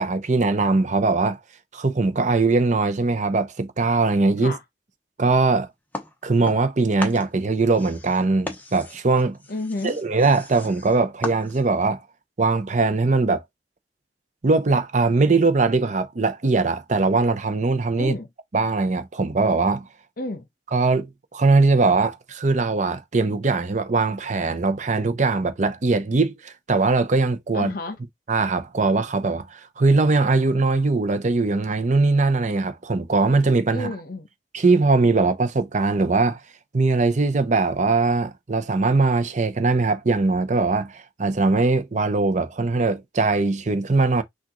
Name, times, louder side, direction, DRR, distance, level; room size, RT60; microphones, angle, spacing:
voice 1, 0.0-1.4 1.7-4.5 5.2-5.7 6.2-9.4 9.8-12.0 12.4-13.4 14.4-18.1 18.5-19.9 20.7-27.7 28.3-33.9 34.5-36.4 36.7-44.2, right 3 dB, 45° right, 0.6 m, -21 dB
sound 1, 5.9-6.7 7.0-11.9, left 1 dB, 10° left, 0.9 m, -36 dB
voice 2, 9.5-10.0 18.0-18.3 20.2-20.5 27.5-28.0 33.7-34.3, left 2 dB, 55° left, 0.9 m, -30 dB
6.0 x 2.4 x 3.0 m
head